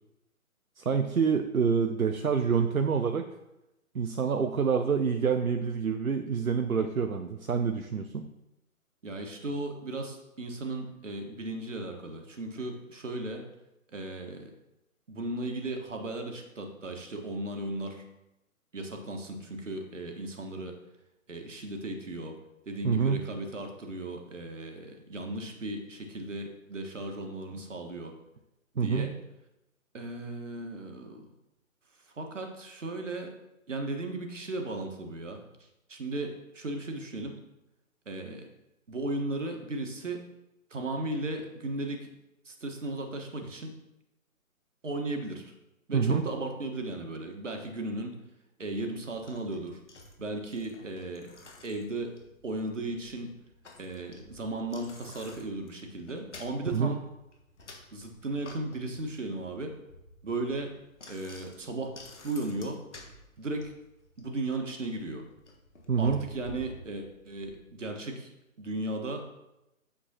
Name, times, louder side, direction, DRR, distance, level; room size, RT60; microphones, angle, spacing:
voice 1, 0.8-3.3 3.9-8.3 22.8-23.2 28.8-29.1 45.9-46.2 56.7-56.9 65.9-66.2, right 6 dB, 80° right, 7 dB, 0.7 m, -27 dB
voice 2, 9.0-13.5 13.9-14.5 15.1-18.0 18.7-20.8 21.3-22.3 22.6-28.1 28.7-29.2 29.9-31.3 32.1-33.3 33.7-35.4 35.9-37.3 38.0-38.5 38.9-40.2 40.7-42.1 42.4-43.7 44.8-45.5 45.9-48.2 48.6-49.8 50.2-51.3 51.6-52.1 52.4-53.4 53.8-57.0 57.9-59.7 60.2-60.8 61.1-61.9 62.2-62.8 63.4-63.7 64.2-65.2 66.0-68.3 68.6-69.2, right 2 dB, 60° right, 3 dB, 1.5 m, -36 dB
Bicycle, 48.8-67.6, left 1 dB, 55° left, 1.6 m, -51 dB
9.1 x 6.8 x 2.9 m, 0.92 s
figure-of-eight pair, 140°, 42 cm